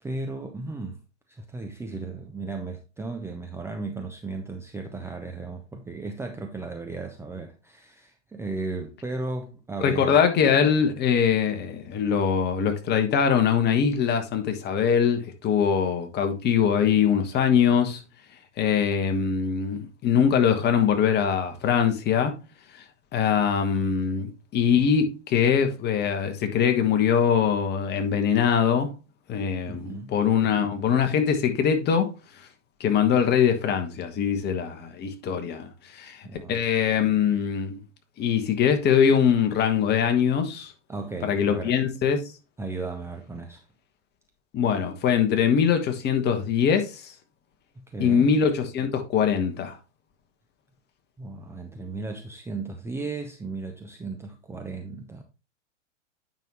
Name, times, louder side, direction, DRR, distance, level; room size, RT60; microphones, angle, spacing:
voice 1, 0.0-1.0 1.3-10.2 29.7-30.1 36.2-36.6 40.9-41.8 42.6-43.6 47.8-48.3 51.2-55.2, right 3 dB, 5° right, 0.6 m, -35 dB
voice 2, 9.8-18.0 18.6-22.4 23.1-28.9 29.3-32.1 32.8-37.7 38.2-40.7 41.2-42.2 44.5-47.1 48.0-49.8, left 7 dB, 30° left, 1.5 m, -22 dB
9.0 x 5.5 x 3.0 m
figure-of-eight pair, 105°, 36 cm